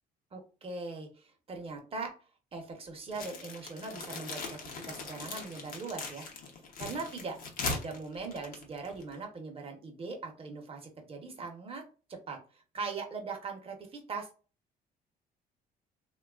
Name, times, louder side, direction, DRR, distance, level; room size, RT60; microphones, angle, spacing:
voice 1, 0.3-2.1 2.5-4.6 4.9-6.3 6.8-7.4 7.7-11.8 12.1-12.4 12.7-14.3, right 4 dB, 35° right, 3 dB, 0.8 m, -40 dB
sound 1, 3.1-9.2, left 4 dB, 55° left, 0.8 m, -40 dB
3.0 x 2.3 x 2.3 m, 0.36 s
cardioid pair, 110°, 17 cm